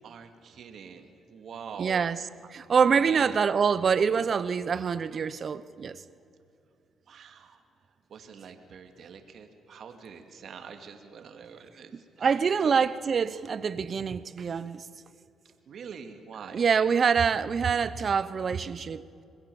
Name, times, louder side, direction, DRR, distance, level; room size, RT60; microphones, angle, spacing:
voice 1, 0.0-2.1 2.8-3.3 7.1-7.6 8.1-12.3 12.6-12.9 15.7-16.7, right 6 dB, 60° right, 2.5 m, -44 dB
voice 2, 1.8-2.2 2.5-6.0 12.2-14.9 16.5-19.0, right 6 dB, 45° right, 0.9 m, -25 dB
26.5 x 20.5 x 7.2 m
cardioid pair, 90°, 0 cm